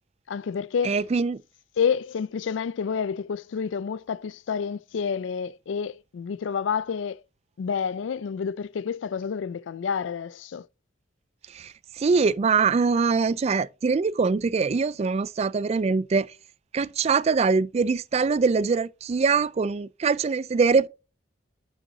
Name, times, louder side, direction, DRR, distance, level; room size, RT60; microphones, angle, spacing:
voice 1, 0.3-1.0 1.8-7.2 7.6-10.7, left 6 dB, 90° left, 0.4 m, -29 dB
voice 2, 0.8-1.4 11.5-16.3 16.7-20.9, right 5 dB, 35° right, 0.3 m, -23 dB
9.7 x 5.4 x 2.7 m
head